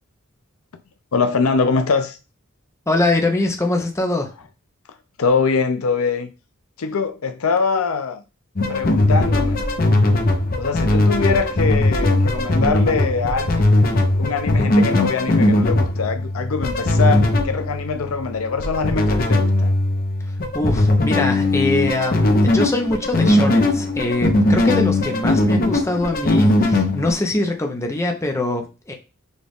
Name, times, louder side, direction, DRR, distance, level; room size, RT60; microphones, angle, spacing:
voice 1, 1.1-2.2 5.2-6.3 6.8-8.2 8.7-9.6 10.6-13.8 14.2-19.7, left 4 dB, 90° left, 0.6 m, -23 dB
voice 2, 2.9-4.3 20.5-28.9, left 2 dB, 15° left, 0.7 m, -23 dB
sound 1, 8.6-27.1, left 1 dB, 45° left, 0.8 m, -19 dB
6.3 x 2.4 x 3.4 m
head